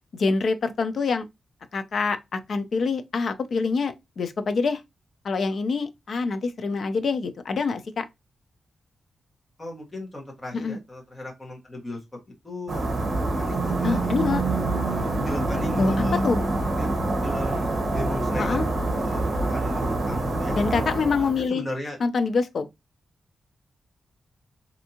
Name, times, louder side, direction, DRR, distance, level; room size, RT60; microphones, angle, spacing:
voice 1, 0.1-1.3 1.7-4.8 5.2-8.0 10.5-10.8 13.8-14.4 15.8-16.4 18.4-18.6 20.6-21.6 22.0-22.7, left 4 dB, 50° left, 0.4 m, -25 dB
voice 2, 9.6-12.0 12.4-12.9 13.4-14.1 14.8-16.2 16.7-16.9 17.2-18.6 19.0-20.6 21.2-22.0, left 1 dB, 15° left, 1.2 m, -36 dB
sound 1, 12.7-21.4, right 2 dB, 45° right, 1.0 m, -26 dB
3.4 x 2.7 x 2.7 m
wide cardioid pair, 175°, 0 cm